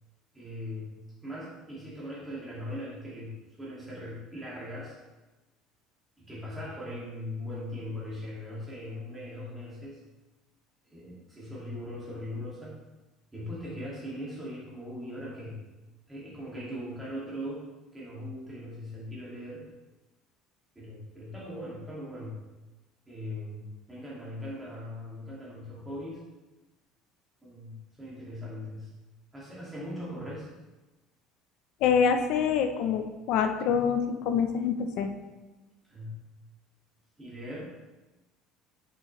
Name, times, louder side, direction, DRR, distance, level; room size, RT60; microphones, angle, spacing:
voice 1, 0.3-5.0 6.2-10.0 10.9-12.7 13.3-15.7 16.1-17.6 17.9-19.7 20.8-22.5 23.1-26.2 27.4-28.9 29.3-30.5 35.9-36.3 37.2-37.7, left 1 dB, 10° right, -7 dB, 2.4 m, -40 dB
voice 2, 31.8-35.1, left 7 dB, 55° left, 6 dB, 0.7 m, -26 dB
7.9 x 6.2 x 3.3 m, 1.1 s
cardioid pair, 165°, 0 cm